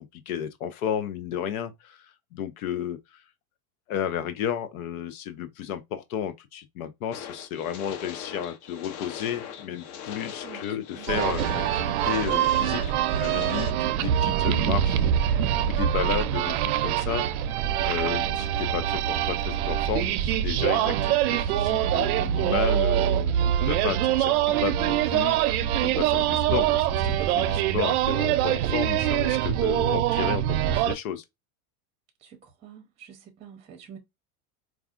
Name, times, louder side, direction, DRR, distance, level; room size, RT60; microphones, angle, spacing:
voice 1, 0.0-3.2 3.9-16.6 16.8-17.3 17.8-31.2, left 9 dB, 75° left, 0.7 m, -33 dB
sound 1, 7.1-13.7, left 8 dB, 40° left, 0.7 m, -40 dB
sound 2, 11.1-31.0, right 11 dB, 80° right, 0.6 m, -24 dB
voice 2, 21.3-21.7 32.2-34.0, right 8 dB, 15° right, 0.7 m, -47 dB
4.7 x 2.4 x 2.4 m
supercardioid pair, 150°, 43 cm